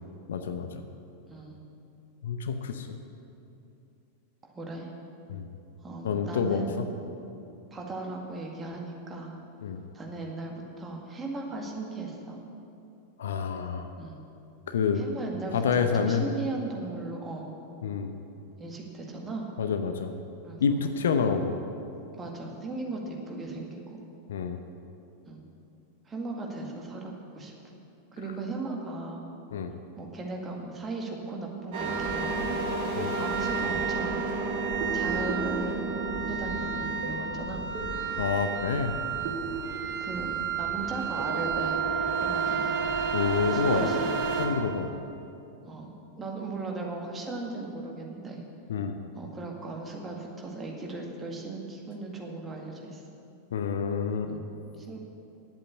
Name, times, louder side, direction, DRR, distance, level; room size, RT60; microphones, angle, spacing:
voice 1, 0.3-0.7 2.2-3.0 5.3-5.5 6.0-6.9 9.6-9.8 13.2-13.9 14.7-15.0 15.5-16.3 17.8-18.1 19.6-20.1 20.6-21.6 24.3-24.6 29.5-29.7 32.9-33.1 38.2-38.9 43.1-43.9 44.4-44.9 48.7-48.9 53.5-54.3, left 6 dB, 60° left, 7 dB, 0.7 m, -28 dB
voice 2, 1.3-1.6 4.4-4.9 5.8-6.8 7.7-9.3 9.9-12.4 14.0-14.2 15.0-17.5 18.6-19.5 20.4-20.9 22.1-24.0 25.3-25.4 26.1-27.5 28.1-29.2 30.0-32.6 32.9-34.3 34.9-35.8 36.3-37.6 39.2-39.4 40.0-41.9 42.2-42.8 43.5-44.1 45.7-45.9 46.2-48.4 49.1-53.0 54.3-54.5 54.8-55.0, right 3 dB, 20° right, 0 dB, 1.9 m, -37 dB
sound 1, 31.7-44.5, right 5 dB, 45° right, 1.8 m, -30 dB
10.5 x 8.2 x 8.3 m, 2.7 s
figure-of-eight pair, 90°, 0 cm